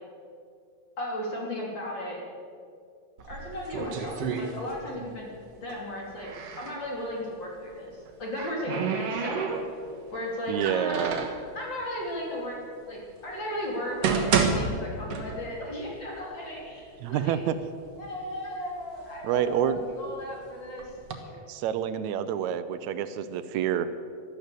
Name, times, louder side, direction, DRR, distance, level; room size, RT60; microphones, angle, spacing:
voice 1, 1.0-2.2 3.3-5.3 5.6-6.3 6.6-8.8 9.1-9.6 10.1-11.3 11.6-12.6 12.9-17.4 18.0-20.9 21.2-21.4, equal, 40° left, -2 dB, 3.5 m, -35 dB
sound 1, 3.2-5.1 5.4-6.8 7.9-10.0 10.5-11.4 12.2-12.3 13.0-13.1 13.7-15.7 16.0-16.1 16.8-16.9 17.3-18.0 18.5-20.2 20.8-21.1, right 5 dB, 60° right, 2.3 m, -30 dB
voice 2, 10.5-11.3 17.0-17.6 19.2-19.8 21.5-23.9, right 9 dB, 80° right, 12 dB, 1.9 m, -28 dB
12.5 x 12.5 x 8.2 m, 2.3 s
omnidirectional pair, 3.3 m